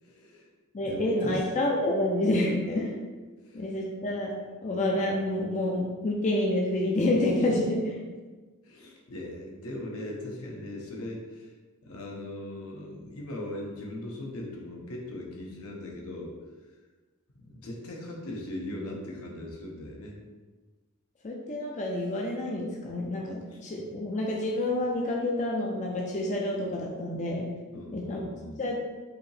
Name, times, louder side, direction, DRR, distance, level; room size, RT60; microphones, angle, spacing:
voice 1, 0.0-0.5 0.8-1.4 3.4-3.7 8.6-11.5 11.8-16.3 17.4-20.2 23.5-23.6 27.7-28.6, left 1 dB, 80° left, -1 dB, 0.9 m, -39 dB
voice 2, 0.7-3.0 3.5-4.3 4.6-8.0 21.2-27.5 27.9-28.2 28.6-28.8, left 1 dB, 35° left, -1 dB, 0.5 m, -28 dB
4.8 x 2.8 x 3.2 m, 1.3 s
head